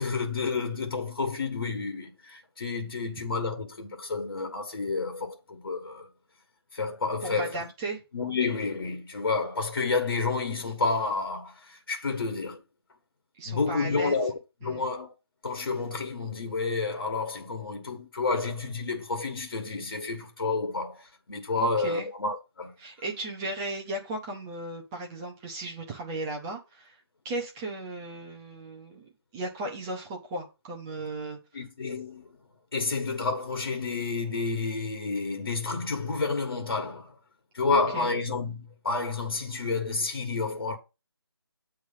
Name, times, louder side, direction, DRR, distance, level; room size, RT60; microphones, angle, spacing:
voice 1, 0.0-6.1 6.7-7.7 8.1-12.6 13.4-14.3 14.6-15.1 15.4-22.7 31.5-32.4 32.7-37.2 37.5-40.8, left 4 dB, 55° left, 1.5 m, -30 dB
voice 2, 7.2-8.0 13.4-14.1 14.6-14.8 21.6-22.1 22.8-27.0 27.2-31.4 37.9-38.1, right 2 dB, 5° right, 0.5 m, -36 dB
8.4 x 3.2 x 5.5 m
figure-of-eight pair, 170°, 14 cm